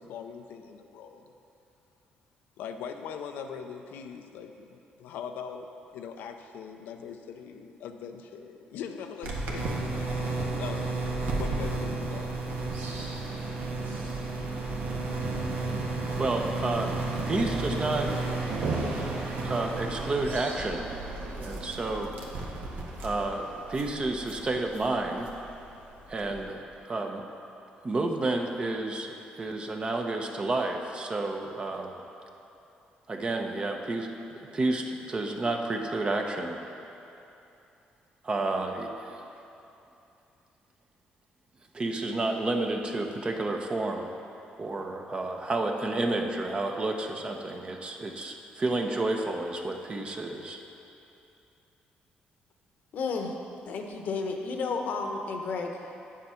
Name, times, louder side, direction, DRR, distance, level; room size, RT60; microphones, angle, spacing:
voice 1, 0.0-1.3 2.6-5.7 5.9-11.0 11.3-12.3, left 7 dB, 85° left, 5 dB, 0.6 m, -41 dB
sound 1, 9.2-26.4, right 3 dB, 75° right, 1.4 m, -33 dB
voice 2, 16.2-16.9 17.3-18.1 19.4-20.9 21.4-22.1 23.0-25.3 26.1-27.2 27.8-32.0 33.1-36.6 38.2-39.2 41.7-44.1 44.6-50.6, right 2 dB, 30° right, 3 dB, 0.9 m, -30 dB
voice 3, 52.9-53.4 53.7-55.7, left 4 dB, 65° left, 3 dB, 1.0 m, -32 dB
8.4 x 7.5 x 5.7 m, 2.8 s
cardioid pair, 95°, 3 cm